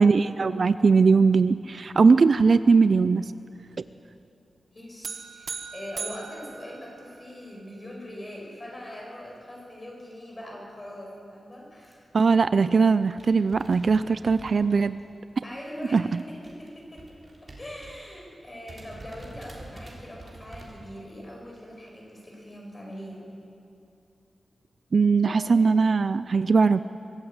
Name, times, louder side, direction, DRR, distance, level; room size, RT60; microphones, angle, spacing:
voice 1, 0.0-3.3 12.1-15.0 15.9-16.0 24.9-26.8, right 4 dB, 50° right, 13 dB, 0.4 m, -20 dB
voice 2, 4.7-12.1 15.4-17.0 17.4-23.3 25.2-25.5, equal, 20° left, -1 dB, 5.2 m, -42 dB
sound 1, 5.0-7.5, right 5 dB, 70° right, 1.2 m, -38 dB
sound 2, 11.8-12.1 12.6-12.7 12.9-15.2 15.5-18.1 18.4-18.5 18.7-20.7, right 1 dB, 30° right, 3.5 m, -46 dB
24.0 x 14.5 x 8.0 m, 2.6 s
wide cardioid pair, 175°, 0 cm